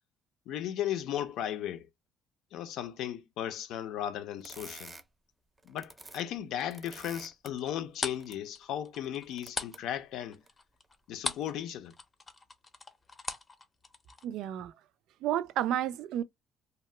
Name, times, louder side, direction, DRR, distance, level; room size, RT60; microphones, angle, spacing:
voice 1, 0.5-1.9 2.5-4.9 5.6-10.4 11.1-11.9, left 10 dB, 75° left, 0.5 m, -36 dB
sound 1, 4.4-5.0 5.6-6.2 6.5-7.5 8.1-8.3 9.0-9.8 10.5-10.6 11.3-11.5, right 2 dB, 20° right, 0.5 m, -49 dB
sound 2, 7.6-11.6 11.9-14.3, left 3 dB, 25° left, 0.6 m, -39 dB
voice 2, 14.2-14.7 15.2-16.2, right 11 dB, 75° right, 0.3 m, -31 dB
2.7 x 2.1 x 3.2 m
cardioid pair, 100°, 0 cm